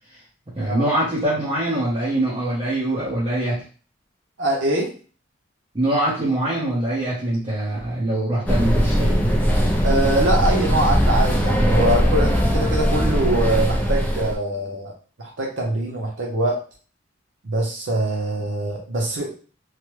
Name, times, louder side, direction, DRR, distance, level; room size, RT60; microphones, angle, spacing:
voice 1, 0.5-3.6 5.7-9.5, right 1 dB, 30° right, -9 dB, 0.8 m, -23 dB
voice 2, 4.4-4.9 9.8-14.9 15.2-16.6 17.4-19.3, right 1 dB, 75° right, -1 dB, 0.6 m, -23 dB
sound 1, 8.5-14.3, equal, 10° left, 0.4 m, -20 dB
3.2 x 2.1 x 3.1 m, 0.39 s
head